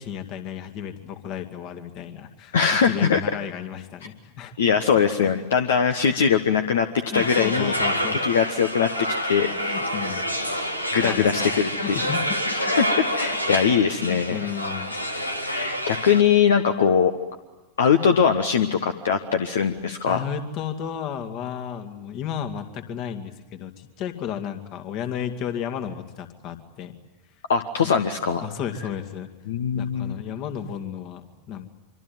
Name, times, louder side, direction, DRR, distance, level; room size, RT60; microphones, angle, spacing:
voice 1, 0.0-2.6 2.8-4.5 5.2-5.3 7.1-8.3 9.5-10.3 11.0-12.5 14.1-15.0 20.0-26.9 28.4-29.3 29.7-31.7, left 9 dB, 40° left, 7 dB, 2.4 m, -33 dB
voice 2, 2.5-3.2 4.6-6.9 7.1-7.8 8.2-9.8 10.9-12.0 12.5-14.4 15.5-17.1 17.8-20.2 27.5-28.5 29.5-30.2, left 7 dB, 60° left, 7 dB, 1.3 m, -21 dB
sound 1, 7.1-16.2, equal, 85° left, 2.0 m, -27 dB
26.0 x 25.0 x 9.4 m, 1.0 s
figure-of-eight pair, 90°, 0 cm